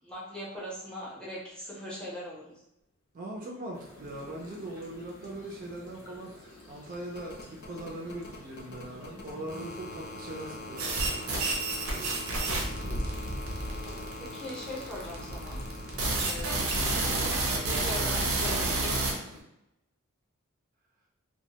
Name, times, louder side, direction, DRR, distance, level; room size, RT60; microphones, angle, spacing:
voice 1, 0.0-2.6 13.6-15.6 16.3-16.8 17.4-19.4, left 1 dB, 5° left, -6 dB, 0.6 m, -41 dB
voice 2, 3.1-11.2 11.9-12.3 15.9-16.3, right 1 dB, 40° right, -1 dB, 0.4 m, -41 dB
sound 1, 3.7-19.4, equal, 80° left, 0.7 m, -43 dB
sound 2, 5.6-16.2 17.7-17.8, left 2 dB, 50° left, 0.4 m, -44 dB
sound 3, 10.8-19.1, right 2 dB, 90° right, 0.6 m, -29 dB
2.1 x 2.1 x 2.8 m, 0.86 s
head